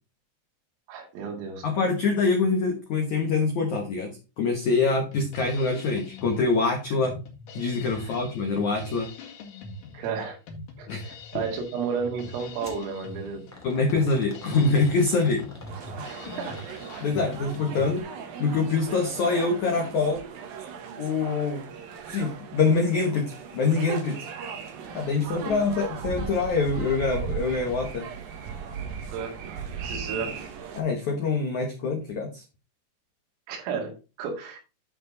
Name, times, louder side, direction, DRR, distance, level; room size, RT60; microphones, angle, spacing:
voice 1, 0.9-1.7 8.0-8.2 9.9-10.4 10.8-13.5 16.1-16.6 25.1-25.6 29.1-29.4 29.7-30.4 33.5-34.6, right 5 dB, 85° right, 3 dB, 4.7 m, -33 dB
voice 2, 1.6-7.1 7.5-9.1 10.9-11.0 13.6-15.5 17.0-18.1 18.4-20.2 21.0-21.6 22.1-24.3 24.9-28.1 30.7-32.4, left 4 dB, 85° left, 2 dB, 1.6 m, -25 dB
Drum kit, 4.7-18.0, left 2 dB, 55° left, 2.6 m, -43 dB
sound 1, 12.6-12.9 13.5-17.2 18.8-19.1 19.5-19.6 20.4-20.5, left 1 dB, 10° left, 0.7 m, -46 dB
sound 2, 15.7-30.8, right 7 dB, 65° right, 2.6 m, -37 dB
11.0 x 5.0 x 4.0 m, 0.30 s
omnidirectional pair, 5.8 m